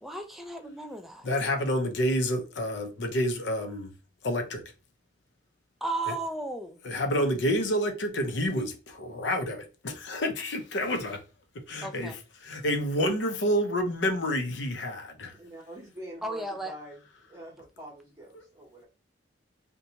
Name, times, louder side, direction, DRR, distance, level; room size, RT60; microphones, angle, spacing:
voice 1, 0.0-1.3 5.8-6.8 11.8-12.1 16.2-16.7, right 2 dB, ahead, 0.3 m, -34 dB
voice 2, 1.2-3.9 4.2-4.6 6.1-6.2 6.8-11.2 11.7-15.3, equal, 75° left, 0.6 m, -29 dB
voice 3, 4.3-4.6 15.3-17.0 17.3-18.8, right 1 dB, 15° right, 0.8 m, -45 dB
2.6 x 2.2 x 2.8 m
head